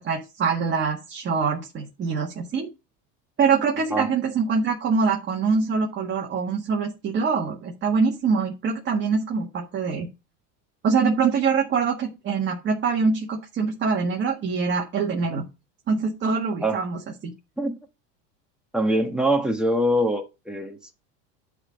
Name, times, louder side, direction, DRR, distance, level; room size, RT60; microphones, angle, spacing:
voice 1, 0.0-2.7 3.4-10.1 10.8-15.5 15.9-17.3, right 5 dB, 30° right, 1.8 m, -24 dB
voice 2, 18.7-20.9, right 1 dB, ahead, 1.4 m, -23 dB
11.5 x 4.1 x 5.2 m
supercardioid pair, 155°, 40 cm